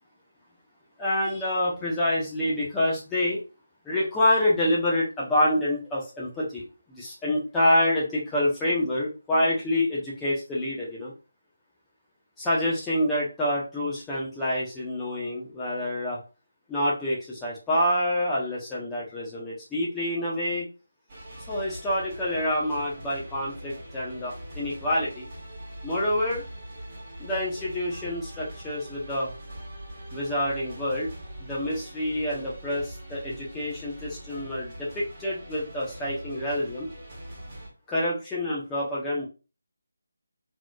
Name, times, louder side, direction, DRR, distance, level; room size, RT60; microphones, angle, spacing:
voice 1, 1.0-3.4 3.8-11.1 12.4-16.2 16.7-20.7 21.5-25.3 25.8-26.4 27.2-29.3 30.1-31.1 31.4-36.9 37.9-39.2, left 1 dB, 10° left, -7 dB, 1.1 m, -27 dB
sound 1, 21.1-37.7, right 1 dB, 25° right, 1.8 m, -42 dB
3.8 x 3.2 x 2.4 m, 0.31 s
figure-of-eight pair, 155°, 0 cm